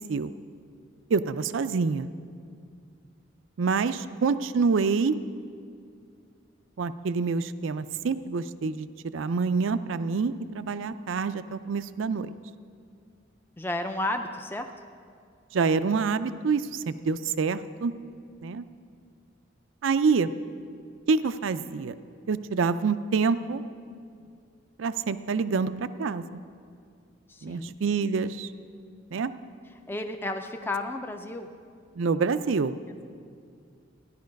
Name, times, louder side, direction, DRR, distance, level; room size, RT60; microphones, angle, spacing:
voice 1, 1.1-2.1 3.6-5.2 6.8-12.3 15.5-17.9 18.4-18.7 19.8-20.3 21.1-21.9 22.3-23.6 24.8-26.4 27.4-28.5 29.1-29.3 32.0-32.8, right 5 dB, 75° right, 13 dB, 0.4 m, -27 dB
voice 2, 13.6-14.7 27.3-27.8 29.9-31.5, left 2 dB, 10° left, 5 dB, 0.4 m, -32 dB
14.0 x 11.0 x 5.2 m, 2.3 s
head